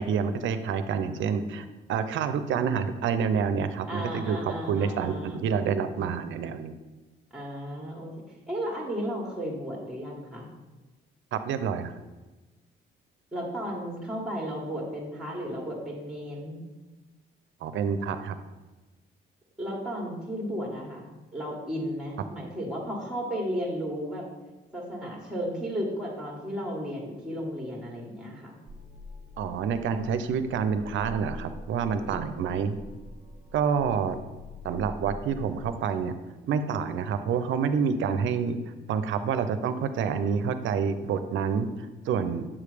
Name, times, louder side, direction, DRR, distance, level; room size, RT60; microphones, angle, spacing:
voice 1, 0.0-6.7 11.3-11.9 17.6-18.4 29.4-32.8 33.5-34.2 34.6-36.1 36.5-38.6 38.9-42.5, right 6 dB, 75° right, 10 dB, 0.5 m, -28 dB
voice 2, 3.9-5.4 7.3-10.5 13.3-16.6 19.6-24.2 24.7-28.5 32.1-32.3, equal, 5° right, -2 dB, 1.5 m, -34 dB
sound 1, 28.7-35.7, left 1 dB, 35° right, 0.8 m, -44 dB
7.3 x 3.3 x 4.9 m, 1.2 s
cardioid pair, 90°, 20 cm